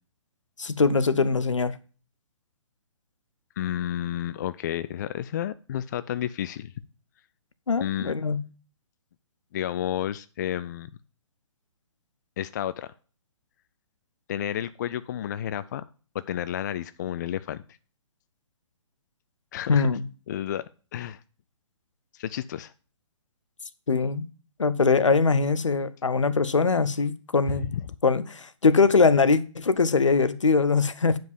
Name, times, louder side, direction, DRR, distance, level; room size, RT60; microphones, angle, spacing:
voice 1, 0.6-1.7 7.7-8.4 19.7-20.1 23.9-24.3 24.6-27.7 28.0-31.2, left 4 dB, 80° left, 0.7 m, -22 dB
voice 2, 3.6-6.7 7.8-8.1 9.5-10.9 12.4-12.9 14.3-15.8 16.3-17.6 19.5-19.9 20.3-20.6 20.9-21.2 22.1-22.7 27.5-27.8, left 11 dB, 35° left, 0.3 m, -31 dB
9.1 x 5.2 x 5.2 m
figure-of-eight pair, 130°, 16 cm